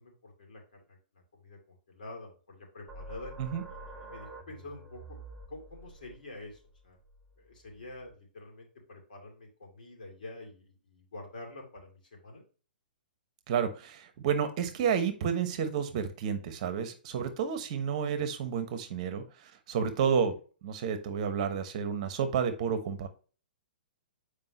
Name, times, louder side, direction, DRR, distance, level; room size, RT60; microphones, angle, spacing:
voice 1, 0.0-3.3 4.0-5.2 5.5-7.0 7.4-12.4, left 2 dB, 65° left, 1 dB, 2.5 m, -47 dB
sound 1, 2.9-8.1, right 2 dB, 5° right, 1.1 m, -48 dB
voice 2, 13.5-20.4 20.6-23.1, right 7 dB, 45° right, 9 dB, 1.1 m, -30 dB
7.6 x 4.9 x 2.9 m, 0.38 s
figure-of-eight pair, 115°, 5 cm